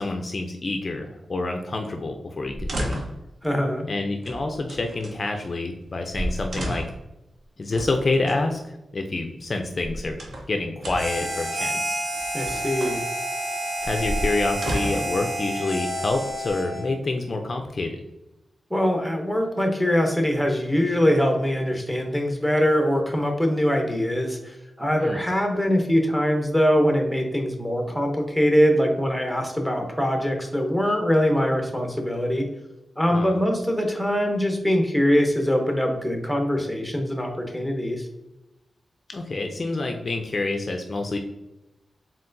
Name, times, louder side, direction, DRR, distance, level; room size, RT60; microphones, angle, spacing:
voice 1, 0.0-3.0 3.9-6.8 7.6-10.2 10.5-12.0 13.8-18.0 25.0-25.2 33.1-33.4 39.1-41.2, left 2 dB, 35° left, 4 dB, 0.3 m, -27 dB
sound 1, 2.5-3.3 4.2-5.2 5.8-5.9 6.1-7.1 7.7-8.4 9.5-10.5 10.8-11.2 12.1-13.0 13.8-15.2 16.0-16.7, equal, 60° right, 0.8 m, -32 dB
voice 2, 3.4-3.9 12.3-13.0 18.7-32.5 33.0-38.1, equal, ahead, 2 dB, 0.7 m, -23 dB
Harmonica, 10.9-16.9, right 1 dB, 40° right, 1.1 m, -29 dB
4.4 x 3.7 x 2.5 m, 0.95 s
wide cardioid pair, 150°, 0 cm